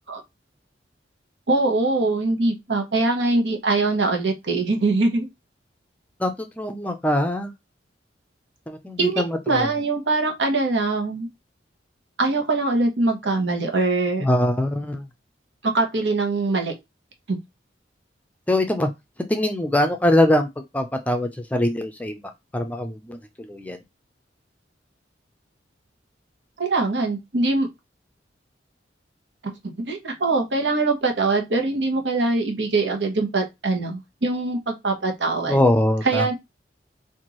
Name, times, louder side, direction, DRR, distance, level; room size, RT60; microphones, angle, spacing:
voice 1, 1.5-5.3 9.0-11.3 12.2-14.3 15.6-16.7 17.3-17.4 26.6-27.7 29.4-35.6 36.0-36.3, right 3 dB, 80° right, 1.1 m, -23 dB
voice 2, 6.6-7.5 8.7-9.7 14.2-15.0 18.5-18.9 19.3-20.5 20.7-22.2 22.5-23.2 23.5-23.8 35.5-36.3, left 1 dB, 10° left, 0.5 m, -22 dB
4.4 x 2.6 x 3.0 m
head